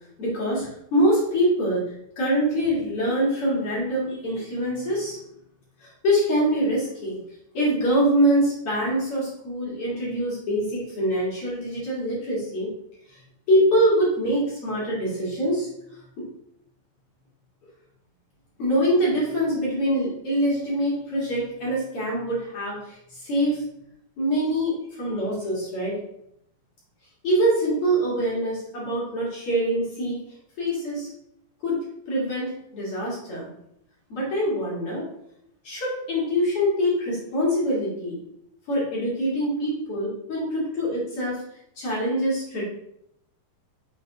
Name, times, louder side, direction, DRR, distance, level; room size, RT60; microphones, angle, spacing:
voice 1, 0.2-1.8 2.2-5.2 5.8-7.2 7.5-12.7 13.1-13.2 13.5-15.7 16.2-16.3 18.6-23.6 24.2-25.9 27.2-30.2 30.6-31.1 31.6-33.5 34.1-35.0 35.6-38.2 38.7-41.4 41.8-42.6, equal, 45° left, -6 dB, 2.1 m, -24 dB
6.6 x 5.0 x 3.5 m, 0.77 s
omnidirectional pair, 5.2 m